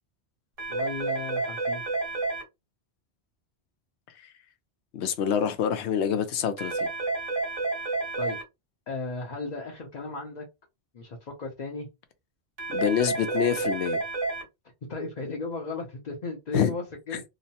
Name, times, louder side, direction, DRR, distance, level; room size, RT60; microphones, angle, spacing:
sound 1, 0.6-2.4 6.6-8.4 12.6-14.4, right 3 dB, 55° right, 1.5 m, -30 dB
voice 1, 0.7-1.8 8.2-8.4 8.9-10.4 10.9-11.9 14.9-17.2, left 3 dB, 45° left, 0.7 m, -35 dB
voice 2, 4.9-6.9 12.7-14.0 16.5-16.7, left 8 dB, 80° left, 0.9 m, -26 dB
3.0 x 2.0 x 2.8 m
omnidirectional pair, 1.1 m